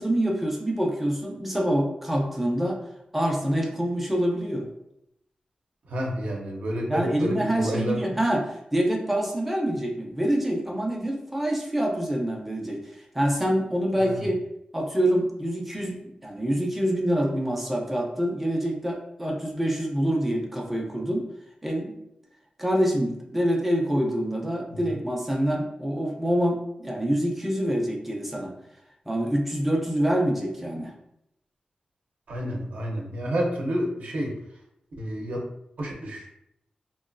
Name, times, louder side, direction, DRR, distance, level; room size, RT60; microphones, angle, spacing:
voice 1, 0.0-2.8 3.1-4.7 6.9-8.4 8.7-12.8 13.1-14.4 14.7-21.2 21.6-22.0 22.6-28.5 29.1-30.9, equal, 5° right, -1 dB, 0.4 m, -26 dB
voice 2, 5.9-8.0 14.0-14.3 24.7-24.8 32.3-34.4 35.0-35.4 35.8-36.3, equal, 70° right, -1 dB, 0.6 m, -29 dB
2.9 x 2.2 x 2.5 m, 0.79 s
wide cardioid pair, 150°, 3 cm